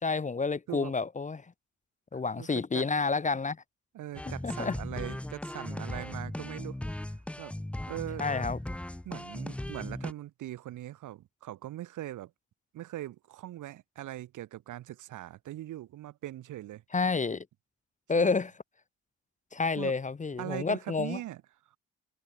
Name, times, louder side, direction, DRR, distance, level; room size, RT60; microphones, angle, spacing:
voice 1, 0.0-1.4 2.1-3.6 4.4-4.8 8.2-8.6 16.9-17.5 18.1-18.5 19.5-21.2, left 4 dB, 25° left, 1.1 m, -29 dB
voice 2, 2.1-2.9 3.9-7.6 7.9-8.3 9.0-12.3 12.7-16.8 18.1-18.3 19.7-19.9 20.4-21.4 21.7-21.8, right 14 dB, 80° right, 3.4 m, -41 dB
sound 1, 4.1-10.1, left 1 dB, 5° left, 0.5 m, -38 dB
cardioid pair, 90°, 30 cm